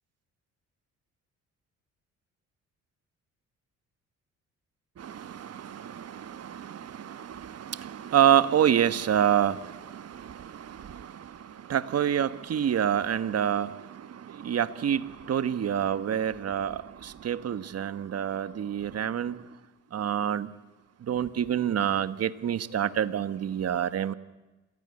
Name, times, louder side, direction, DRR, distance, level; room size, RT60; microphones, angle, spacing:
voice 1, 5.0-11.1 11.7-13.8 14.4-19.4 19.9-20.5 21.1-24.1, right 9 dB, 55° right, 1.3 m, -27 dB
27.5 x 18.5 x 9.8 m
cardioid pair, 90°, 30 cm